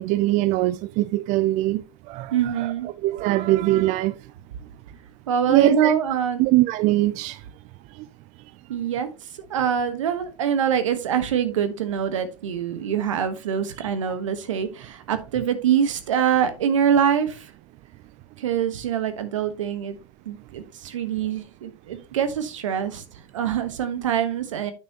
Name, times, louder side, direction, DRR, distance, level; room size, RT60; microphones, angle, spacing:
voice 1, 0.0-2.7 3.0-4.2 5.5-5.9 6.4-7.4 7.9-8.1, right 17 dB, 50° right, 0.5 m, -22 dB
voice 2, 2.3-2.9 5.3-6.6 8.7-17.5 18.4-20.0 20.2-23.0 23.3-24.7, right 8 dB, 80° right, 1.3 m, -24 dB
9.0 x 6.4 x 2.9 m
hypercardioid pair, 90°, 16 cm